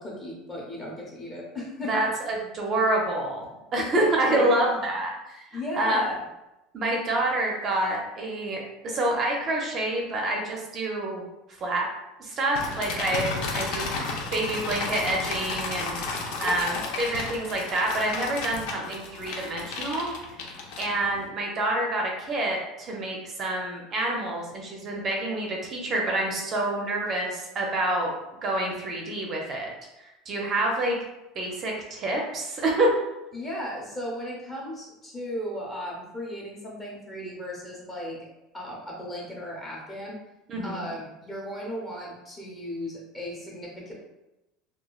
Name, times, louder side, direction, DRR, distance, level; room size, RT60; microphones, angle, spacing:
voice 1, 0.0-2.0 3.8-4.8 5.5-6.2 16.4-17.0 33.3-38.3 38.5-40.2 40.6-44.0, left 1 dB, 20° left, -3 dB, 0.7 m, -36 dB
voice 2, 1.9-3.5 3.7-6.0 6.7-11.2 11.6-11.8 12.2-13.9 14.3-20.1 20.8-28.1 28.4-29.7 30.0-31.0 31.4-32.9 40.5-40.9, right 1 dB, 35° right, 0 dB, 0.5 m, -27 dB
sound 1, 12.5-21.3, left 3 dB, 70° left, 0.5 m, -33 dB
3.0 x 2.2 x 2.3 m, 0.96 s
cardioid pair, 145°, 0 cm